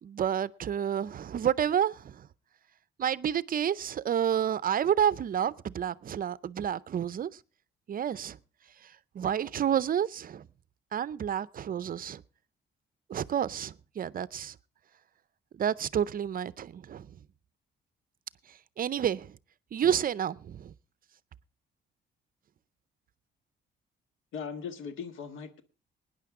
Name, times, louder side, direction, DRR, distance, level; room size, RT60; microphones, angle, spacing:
voice 1, 0.0-2.3 3.0-7.3 7.9-8.4 9.1-10.4 10.9-12.2 13.1-14.5 15.6-17.1 18.8-19.4 19.7-20.7, right 9 dB, 45° right, 0.5 m, -29 dB
voice 2, 24.3-25.6, left 6 dB, 80° left, 1.5 m, -39 dB
19.5 x 10.0 x 3.6 m
cardioid pair, 90°, 20 cm